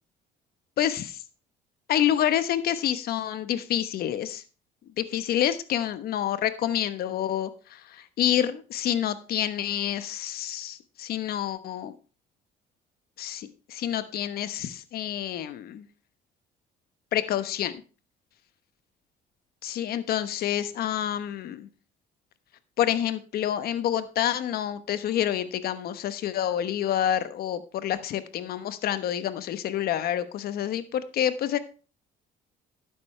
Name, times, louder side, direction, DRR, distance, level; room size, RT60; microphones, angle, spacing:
voice 1, 0.8-1.2 1.9-4.4 5.0-11.9 13.2-15.8 17.1-17.7 19.6-21.7 22.8-31.6, left 11 dB, 65° left, 12 dB, 1.1 m, -28 dB
12.0 x 9.4 x 3.3 m, 0.34 s
cardioid pair, 110°, 17 cm